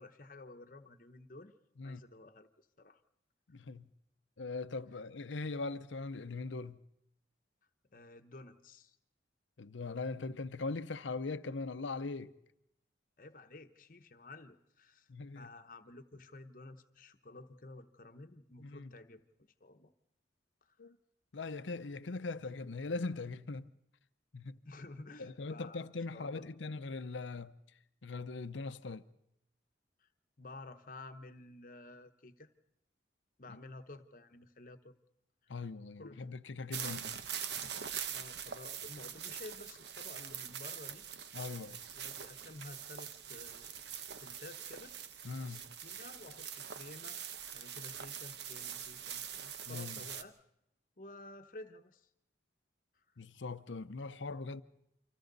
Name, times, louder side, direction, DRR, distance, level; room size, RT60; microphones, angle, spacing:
voice 1, 0.0-1.5 1.8-3.0 7.9-9.0 13.2-15.1 15.3-19.9 20.7-20.8 24.6-26.5 30.0-30.1 30.4-32.5 33.4-35.0 35.4-35.6 36.0-36.2 36.8-37.0 38.1-41.1 41.9-43.7 44.2-45.0 45.4-47.2 47.5-50.4 51.0-52.1 53.0-53.1, left 2 dB, 45° left, 1.0 m, -52 dB
voice 2, 3.5-3.9 4.4-6.8 9.6-12.3 15.1-15.5 18.6-18.9 20.8-21.0 21.3-23.7 24.3-24.6 25.2-27.5 28.0-29.0 33.5-33.6 35.5-37.2 41.3-41.8 45.2-45.6 49.7-50.0 53.2-54.6, left 3 dB, 90° left, 0.7 m, -40 dB
sound 1, 36.7-50.2, right 8 dB, 65° right, 0.9 m, -43 dB
29.0 x 25.5 x 4.0 m
head